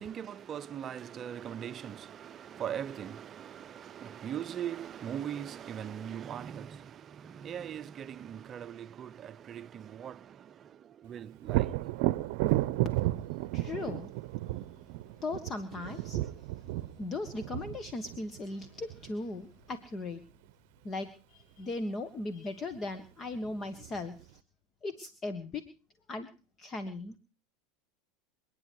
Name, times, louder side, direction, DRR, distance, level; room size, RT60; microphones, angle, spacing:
voice 1, 0.0-6.9 7.2-10.2 11.0-11.7 16.1-16.2, right 9 dB, 35° right, 0.7 m, -40 dB
Thunder, 11.4-19.1 22.8-22.9 23.3-24.2, right 17 dB, 70° right, 0.8 m, -33 dB
voice 2, 13.5-14.1 15.2-16.2 17.0-20.2 20.8-24.2 24.8-25.6 26.1-26.3 26.6-27.2, left 2 dB, 30° left, 1.6 m, -38 dB
28.0 x 10.0 x 4.7 m
hypercardioid pair, 105°, 0 cm